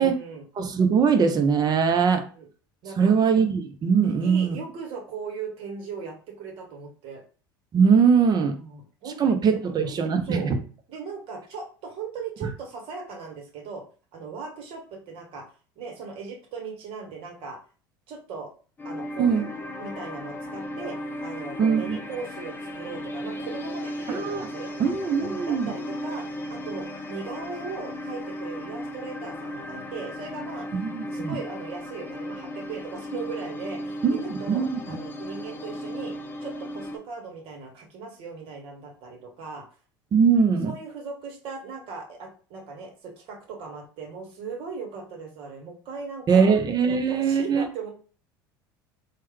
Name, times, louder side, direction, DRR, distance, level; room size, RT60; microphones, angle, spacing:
voice 1, 0.0-0.5 2.4-2.5 2.8-3.1 4.0-7.2 8.6-9.9 10.2-10.5 10.9-13.8 14.1-15.4 15.8-17.6 18.1-18.5 18.8-19.5 19.8-24.7 25.2-26.2 26.5-30.7 31.1-36.1 36.4-39.6 40.6-46.5 46.9-47.9, right 5 dB, 50° right, 1 dB, 1.2 m, -38 dB
voice 2, 0.6-2.2 3.0-4.6 7.7-8.6 9.2-10.4 19.2-19.4 21.6-22.0 24.1-24.5 24.8-25.7 30.8-31.4 34.0-35.0 40.1-40.7 46.3-47.6, right 6 dB, 35° right, 6 dB, 0.7 m, -21 dB
sound 1, 18.8-37.0, equal, 15° left, 0.6 m, -36 dB
3.1 x 2.2 x 3.2 m, 0.38 s
figure-of-eight pair, 70°, 12 cm